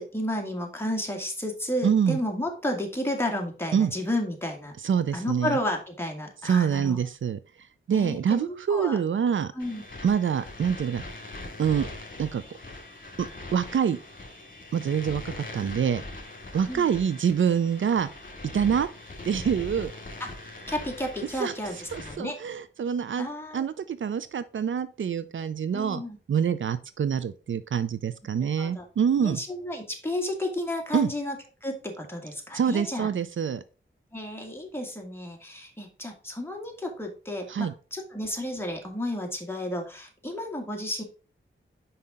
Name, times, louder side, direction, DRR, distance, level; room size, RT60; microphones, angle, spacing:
voice 1, 0.0-4.8 5.1-7.0 7.9-9.0 9.6-9.8 16.7-16.9 20.2-22.4 23.2-23.6 25.7-26.2 28.6-28.8 29.2-31.4 31.6-33.1 34.1-41.0, left 1 dB, 10° left, 1 dB, 1.9 m, -32 dB
voice 2, 1.8-2.2 3.7-3.9 4.8-5.6 6.4-7.4 7.9-9.5 10.0-11.0 11.6-11.9 12.2-12.4 13.5-14.0 14.7-16.0 16.5-18.1 18.5-18.9 19.2-19.9 21.4-21.5 21.9-23.3 23.5-26.0 26.3-29.4 30.9-31.1 32.5-33.6 37.5-37.7, right 7 dB, 70° right, 14 dB, 0.5 m, -25 dB
sound 1, 9.6-22.2, left 2 dB, 45° left, 2.3 m, -41 dB
5.6 x 5.5 x 3.6 m, 0.34 s
wide cardioid pair, 80°, 21 cm